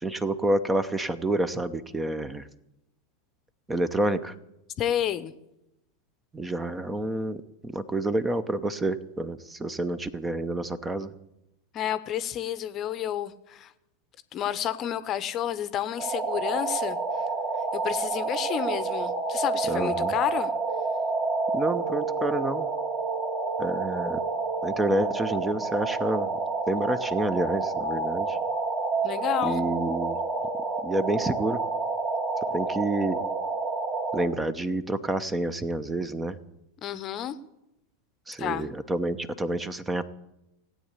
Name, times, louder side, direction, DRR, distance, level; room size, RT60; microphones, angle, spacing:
voice 1, 0.0-2.5 3.7-4.3 6.3-11.1 19.7-20.1 21.5-22.7 23.6-24.2 24.6-26.4 26.7-28.4 29.4-30.2 30.8-31.6 32.5-33.2 34.1-36.4 38.3-40.0, right 1 dB, 10° right, 15 dB, 0.8 m, -28 dB
voice 2, 4.8-5.3 11.7-13.7 14.3-17.0 17.7-20.5 29.0-29.6 36.8-37.4 38.4-38.7, left 10 dB, 35° left, 14 dB, 0.8 m, -30 dB
sound 1, 16.0-34.3, right 3 dB, 30° right, 2.5 m, -29 dB
16.5 x 8.9 x 8.3 m, 0.89 s
figure-of-eight pair, 85°, 0 cm